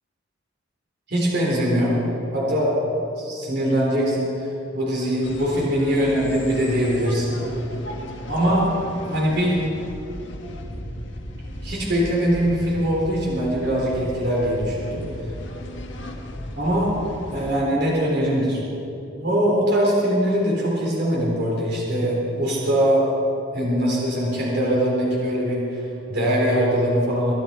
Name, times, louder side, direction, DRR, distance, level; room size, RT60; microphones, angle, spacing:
voice 1, 1.1-2.0 2.3-2.7 3.2-7.4 8.3-8.7 9.0-9.6 11.4-15.0 16.6-16.9 17.3-18.6 19.2-23.0 23.5-27.3, equal, 55° right, -4 dB, 4.0 m, -22 dB
sound 1, 5.2-17.6, equal, 65° left, 1.4 m, -36 dB
24.5 x 10.5 x 4.5 m, 2.9 s
head